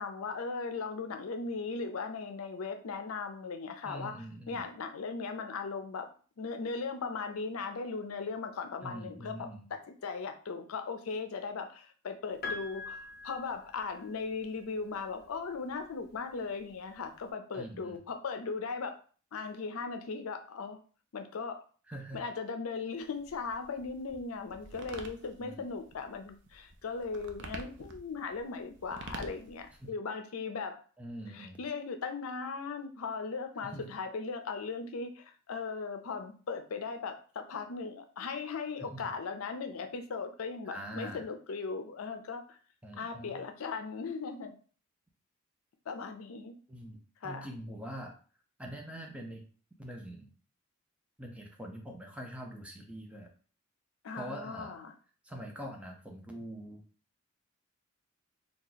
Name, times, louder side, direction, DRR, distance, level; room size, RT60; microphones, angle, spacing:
voice 1, 0.0-6.1 6.4-19.0 19.3-20.8 21.1-21.6 22.1-30.8 31.3-42.6 42.9-44.5 45.9-46.5 47.2-47.5 54.0-54.9, left 4 dB, 80° left, 7 dB, 0.5 m, -38 dB
voice 2, 3.8-4.6 8.8-9.7 17.5-18.0 21.9-22.2 25.4-25.7 29.8-29.9 31.0-31.6 33.6-33.8 38.8-39.1 40.7-41.3 42.8-43.4 46.7-48.2 48.6-49.4 49.8-50.3 51.2-53.3 54.1-54.8 55.2-56.8, right 1 dB, 5° right, 1 dB, 0.6 m, -44 dB
Piano, 12.4-14.4 15.7-15.8, left 3 dB, 50° left, 0.7 m, -42 dB
sound 1, 23.0-29.9, right 2 dB, 55° right, 0.5 m, -48 dB
2.8 x 2.4 x 3.9 m, 0.40 s
head